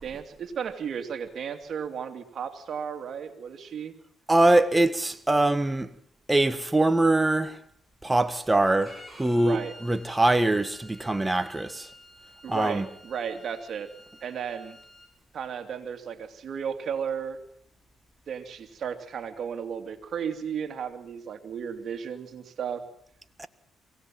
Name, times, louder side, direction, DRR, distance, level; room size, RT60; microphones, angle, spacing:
voice 1, 0.0-3.9 9.3-9.7 12.4-13.9 14.2-14.8 15.3-17.4 18.3-22.8, right 7 dB, 55° right, 2.7 m, -34 dB
voice 2, 4.3-5.9 6.3-7.6 8.0-11.9 12.5-12.8 23.4-23.5, right 2 dB, 15° right, 1.5 m, -23 dB
Bowed string instrument, 8.8-15.1, left 1 dB, 10° left, 5.3 m, -51 dB
23.0 x 17.5 x 7.7 m
cardioid pair, 80°, 0 cm